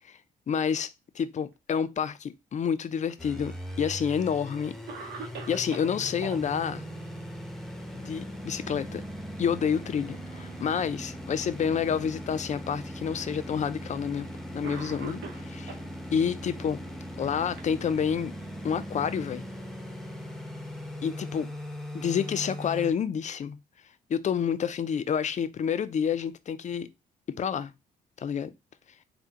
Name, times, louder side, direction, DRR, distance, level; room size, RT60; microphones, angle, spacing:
voice 1, 0.5-0.9 1.2-4.8 5.1-6.8 7.9-9.0 9.4-15.8 16.1-16.8 17.2-18.3 18.6-19.4 21.0-21.5 21.9-23.6 24.1-26.9 27.3-27.7 28.2-28.5, left 7 dB, 40° left, 0.4 m, -29 dB
Cough, 3.1-3.9 4.4-4.5 4.9-6.4 8.3-8.7 9.0-9.1 10.0-10.7 11.4-11.5 12.6-12.7 13.8-14.0 14.6-15.9 16.8-18.3, right 4 dB, 75° right, 0.7 m, -44 dB
sound 1, 3.2-22.9, equal, ahead, 0.7 m, -39 dB
3.4 x 2.1 x 2.8 m
supercardioid pair, 50°, 18 cm